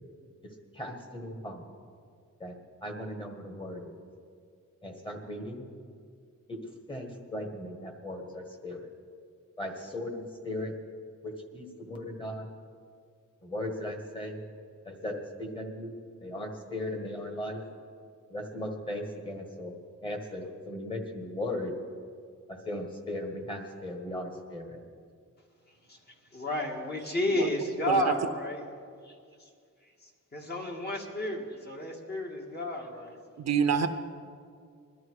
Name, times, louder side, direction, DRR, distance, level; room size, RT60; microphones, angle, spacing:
voice 1, 0.7-1.6 2.4-2.5 2.8-3.9 4.8-5.7 6.5-6.6 6.9-8.9 9.6-10.7 11.2-12.5 13.4-14.4 14.8-15.9 16.2-17.6 18.3-19.7 20.0-21.8 22.5-24.8, left 1 dB, 15° left, 3 dB, 1.8 m, -37 dB
voice 2, 26.3-28.6 29.0-29.2 30.3-33.2, left 1 dB, 30° left, 0 dB, 1.9 m, -31 dB
voice 3, 33.4-33.9, right 7 dB, 60° right, 8 dB, 0.8 m, -27 dB
21.5 x 12.0 x 4.8 m, 2.2 s
wide cardioid pair, 170°, 31 cm